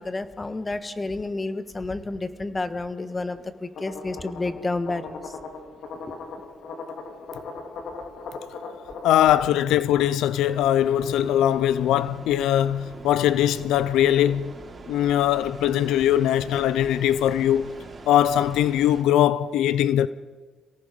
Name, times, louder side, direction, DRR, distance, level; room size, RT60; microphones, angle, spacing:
voice 1, 0.0-5.3 5.9-6.1, left 2 dB, 20° left, 1.6 m, -30 dB
sound 1, 3.7-9.2, left 4 dB, 70° left, 3.1 m, -38 dB
voice 2, 9.0-14.5 14.9-17.7 18.1-20.1, left 11 dB, 85° left, 0.5 m, -21 dB
sound 2, 10.5-19.0, right 3 dB, 35° right, 4.5 m, -43 dB
28.5 x 18.0 x 5.3 m
cardioid pair, 90°, 0 cm